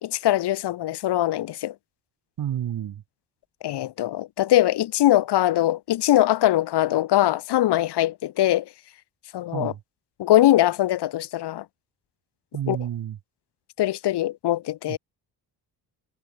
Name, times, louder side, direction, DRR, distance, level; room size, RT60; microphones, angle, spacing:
voice 1, 0.0-1.7 3.6-8.6 9.3-9.7 10.2-11.6 12.7-12.8 13.8-15.0, left 14 dB, 75° left, 1.3 m, -22 dB
voice 2, 2.4-3.0 9.5-9.8 12.5-13.2 14.9-15.0, right 10 dB, 60° right, 2.0 m, -30 dB
cardioid pair, 90°, 40 cm